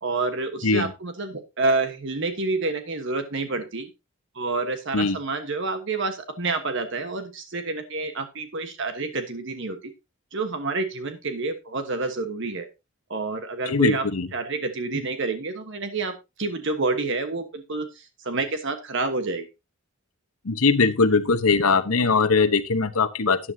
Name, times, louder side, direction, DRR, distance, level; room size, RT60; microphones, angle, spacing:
voice 1, 0.0-3.9 4.3-9.8 10.3-12.7 13.1-14.0 14.3-19.5, right 3 dB, 55° right, 1.2 m, -28 dB
voice 2, 13.7-14.3 20.4-23.4, left 4 dB, 80° left, 1.0 m, -21 dB
12.5 x 9.9 x 2.7 m
head